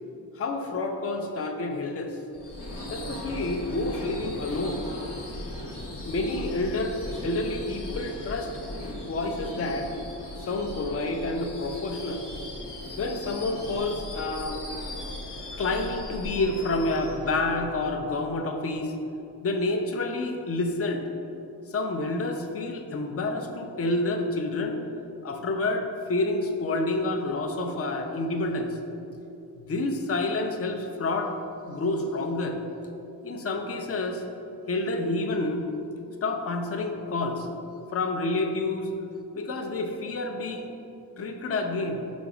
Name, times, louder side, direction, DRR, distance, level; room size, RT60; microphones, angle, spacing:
voice 1, 0.3-2.2 2.9-4.8 6.0-8.6 9.1-9.9 10.4-12.2 13.0-14.6 15.6-18.9 19.4-21.0 21.7-24.8 25.2-28.8 29.6-31.3 31.7-32.6 33.2-34.2 34.7-35.6 36.2-37.5 37.9-38.9 39.3-40.7 41.2-42.0, left 2 dB, 35° left, 4 dB, 0.4 m, -29 dB
Subway metro underground / Screech, 2.3-18.3, left 1 dB, 75° left, 1.0 m, -38 dB
5.1 x 3.9 x 4.8 m, 2.8 s
wide cardioid pair, 145°, 41 cm